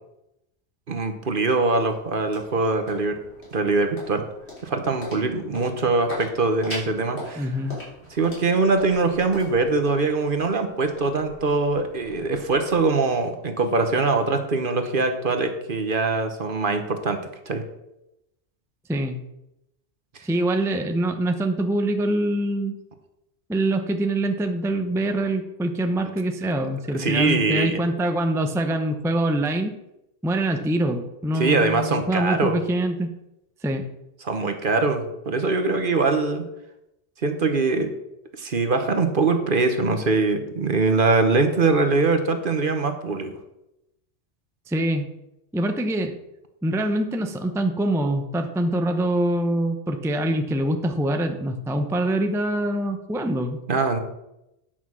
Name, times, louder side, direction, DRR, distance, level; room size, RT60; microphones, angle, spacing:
voice 1, 0.9-3.2 3.5-4.2 4.6-7.5 8.1-17.2 17.5-17.6 26.9-27.8 31.3-32.6 34.2-36.4 37.2-37.9 38.4-43.3 53.7-54.0, right 3 dB, 50° right, 7 dB, 1.2 m, -22 dB
sound 1, 1.3-13.7, left 1 dB, 65° left, 4.1 m, -42 dB
voice 2, 7.4-7.8 18.9-19.2 20.2-22.8 23.5-29.7 30.2-33.1 33.6-33.9 44.7-45.1 45.5-46.2 46.6-53.6, right 1 dB, 5° right, 6 dB, 0.6 m, -24 dB
9.6 x 5.8 x 6.2 m, 0.88 s
omnidirectional pair, 1.2 m